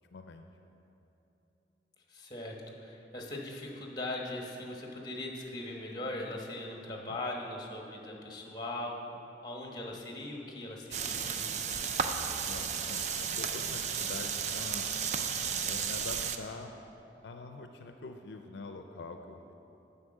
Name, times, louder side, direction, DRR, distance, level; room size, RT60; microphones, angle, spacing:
voice 1, 0.1-0.4 6.9-7.2 12.2-14.9 15.6-16.7 17.2-19.5, left 3 dB, 70° left, 6 dB, 0.5 m, -45 dB
voice 2, 2.1-9.2 9.4-11.8, left 1 dB, 25° left, 0 dB, 1.1 m, -40 dB
sound 1, 10.9-16.4, right 6 dB, 40° right, 0.4 m, -33 dB
8.0 x 5.7 x 7.8 m, 2.9 s
head